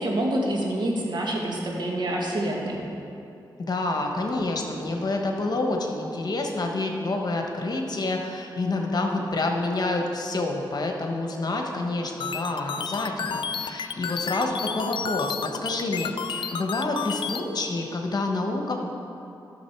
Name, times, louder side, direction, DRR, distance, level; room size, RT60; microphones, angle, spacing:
voice 1, 0.0-2.8, right 1 dB, 60° right, -2 dB, 1.8 m, -27 dB
voice 2, 3.6-18.9, left 2 dB, 50° left, 2 dB, 1.3 m, -28 dB
sound 1, 12.2-17.4, left 6 dB, 75° left, 0.4 m, -31 dB
12.0 x 6.4 x 4.7 m, 2.7 s
cardioid pair, 65°, 9 cm